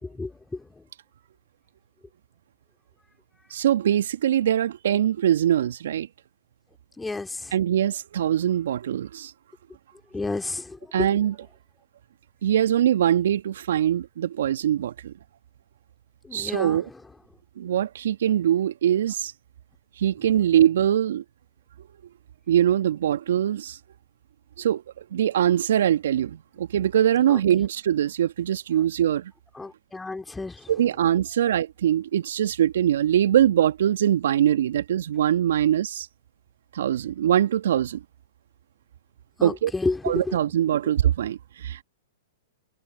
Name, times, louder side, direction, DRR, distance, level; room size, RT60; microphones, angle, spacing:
voice 1, 0.0-0.8 7.0-7.5 10.1-11.1 16.2-17.0 27.3-27.4 29.5-30.7 39.4-40.4 40.8-40.9, left 3 dB, 10° left, 3.4 m, -31 dB
voice 2, 3.5-6.1 7.5-9.3 10.9-11.3 12.4-15.1 16.3-16.8 17.6-19.3 20.0-21.2 22.5-23.8 24.6-29.3 30.7-36.1 36.7-38.0 39.4-39.7 40.0-41.8, right 10 dB, 65° right, 1.7 m, -22 dB
hypercardioid pair, 110°, 0 cm